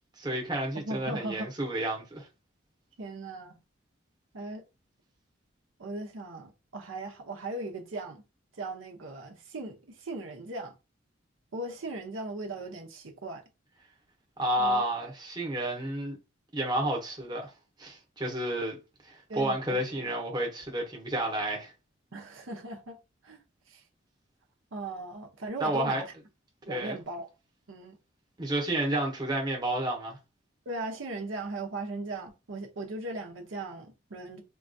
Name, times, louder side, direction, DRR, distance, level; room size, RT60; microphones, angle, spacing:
voice 1, 0.2-2.3 14.4-16.2 16.5-17.5 17.8-18.8 19.0-21.7 25.6-26.0 26.7-27.0 28.4-30.2, right 1 dB, 20° right, 0.8 m, -30 dB
voice 2, 0.8-1.5 3.0-3.6 4.3-4.6 5.8-8.2 8.6-10.7 11.5-13.4 14.6-14.8 19.3-20.1 22.1-23.0 23.2-23.4 23.7-23.8 24.7-26.1 26.7-27.3 27.7-28.0 30.7-34.4, right 2 dB, 80° right, 0.7 m, -38 dB
3.7 x 2.3 x 2.6 m
head